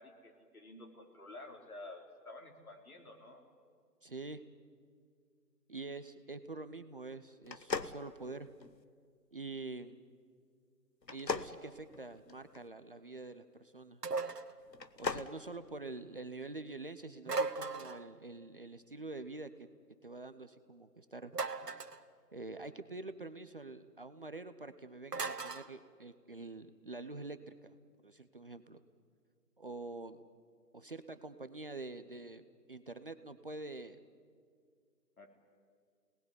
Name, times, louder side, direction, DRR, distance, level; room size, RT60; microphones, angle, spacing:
voice 1, 0.0-3.4 35.2-35.3, left 2 dB, 60° left, 3 dB, 4.3 m, -51 dB
voice 2, 4.0-4.4 5.7-8.5 9.3-10.0 11.1-14.0 15.0-19.7 20.0-21.3 22.3-27.8 28.0-28.8 29.6-30.2 30.7-34.0, right 3 dB, 35° right, 10 dB, 0.8 m, -46 dB
sound 1, 7.4-8.8 11.0-12.6 14.7-15.3, left 4 dB, 85° left, 1.3 m, -39 dB
sound 2, 14.0-14.5 17.2-18.1 21.3-22.0 25.1-25.7, right 3 dB, 70° right, 1.5 m, -37 dB
27.0 x 19.5 x 9.8 m, 2.1 s
figure-of-eight pair, 150°, 49 cm